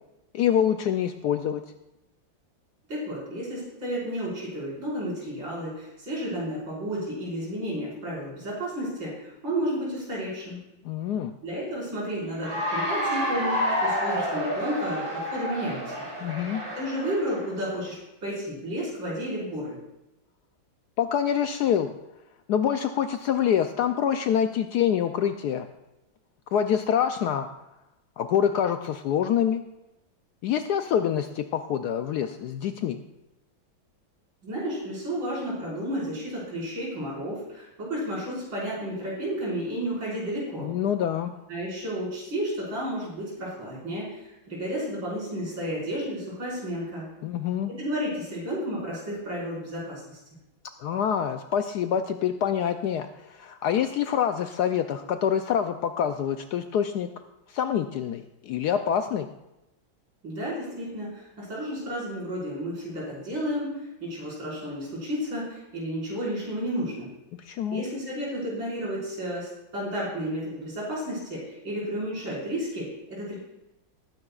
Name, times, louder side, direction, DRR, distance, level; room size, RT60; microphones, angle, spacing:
voice 1, 0.3-1.6 10.8-11.3 16.2-16.6 21.0-21.9 22.5-25.7 26.5-27.5 28.2-29.6 30.4-33.0 40.6-41.3 47.2-47.7 50.8-57.1 57.5-59.3 67.5-67.8, left 9 dB, 75° left, 8 dB, 0.9 m, -26 dB
voice 2, 2.9-10.6 11.4-16.1 16.8-19.8 34.4-40.7 41.5-47.1 47.7-50.2 60.2-67.1 67.7-73.3, equal, 75° right, -7 dB, 5.9 m, -32 dB
Cheering / Applause, 12.3-17.5, equal, 25° right, 3.0 m, -29 dB
19.5 x 9.7 x 2.4 m, 0.93 s
omnidirectional pair, 2.1 m